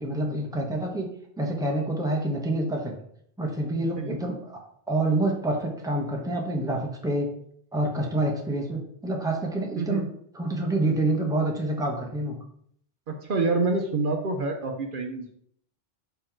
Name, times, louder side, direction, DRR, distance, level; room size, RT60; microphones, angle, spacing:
voice 1, 0.0-1.1 1.4-2.9 3.4-4.6 4.9-7.3 7.7-10.1 10.3-12.4, right 1 dB, 5° right, 0 dB, 0.9 m, -27 dB
voice 2, 13.2-15.4, right 3 dB, 60° right, 4 dB, 0.8 m, -27 dB
5.6 x 4.3 x 4.5 m, 0.67 s
omnidirectional pair, 1.1 m